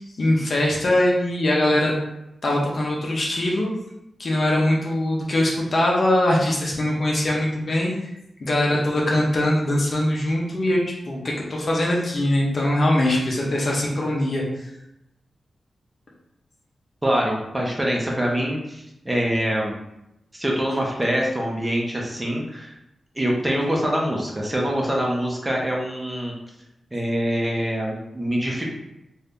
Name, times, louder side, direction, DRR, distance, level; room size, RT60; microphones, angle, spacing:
voice 1, 0.0-1.9 2.4-3.7 4.2-7.9 8.4-14.7, left 1 dB, 55° left, -3 dB, 0.9 m, -22 dB
voice 2, 17.0-19.7 20.3-22.7 23.1-26.3 26.9-28.6, equal, 20° right, -2 dB, 1.0 m, -24 dB
2.8 x 2.7 x 3.5 m, 0.86 s
cardioid pair, 50°, 0 cm